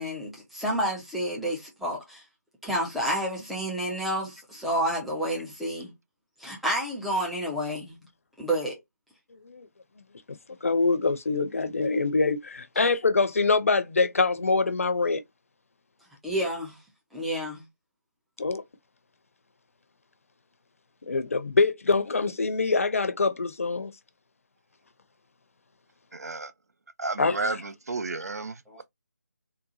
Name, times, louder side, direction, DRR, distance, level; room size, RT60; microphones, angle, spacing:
voice 1, 0.0-2.2 2.6-5.9 6.4-8.0 8.4-8.8 16.2-16.8 17.1-17.6 28.7-28.8, right 1 dB, ahead, 0.3 m, -30 dB
voice 2, 10.3-15.2 18.4-18.6 21.0-23.9 27.2-27.6, left 3 dB, 50° left, 0.5 m, -25 dB
voice 3, 26.1-26.5 27.0-28.8, right 3 dB, 65° right, 0.5 m, -32 dB
3.8 x 2.3 x 2.6 m
figure-of-eight pair, 155°, 9 cm